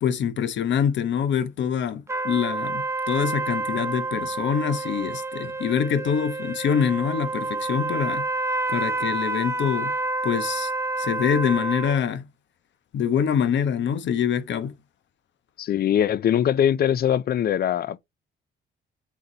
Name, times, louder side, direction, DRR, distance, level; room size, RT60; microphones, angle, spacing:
voice 1, 0.0-8.2 8.7-9.9 10.2-10.7 11.0-12.3 12.9-14.7, left 8 dB, 65° left, 1.0 m, -25 dB
sound 1, 2.1-12.0, right 3 dB, 15° right, 0.7 m, -29 dB
voice 2, 15.6-18.0, left 10 dB, 50° left, 0.5 m, -22 dB
8.1 x 4.0 x 2.9 m
cardioid pair, 90°, 20 cm